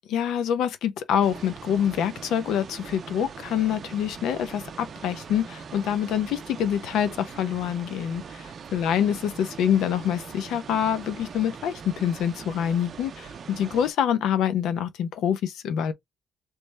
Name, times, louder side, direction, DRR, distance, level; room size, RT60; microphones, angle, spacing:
voice 1, 0.1-15.9, left 9 dB, 85° left, 0.6 m, -26 dB
sound 1, 1.2-13.9, right 6 dB, 50° right, 0.5 m, -42 dB
3.2 x 3.1 x 3.2 m
cardioid pair, 90°, 0 cm